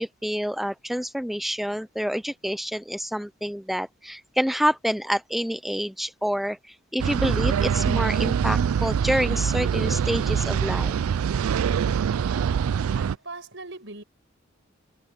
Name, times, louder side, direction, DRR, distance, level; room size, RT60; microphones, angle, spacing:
voice 1, 0.0-10.9, equal, ahead, 0.3 m, -28 dB
sound 1, 7.0-13.2, right 7 dB, 90° right, 0.4 m, -24 dB
voice 2, 12.9-14.0, right 3 dB, 60° right, 7.1 m, -42 dB
head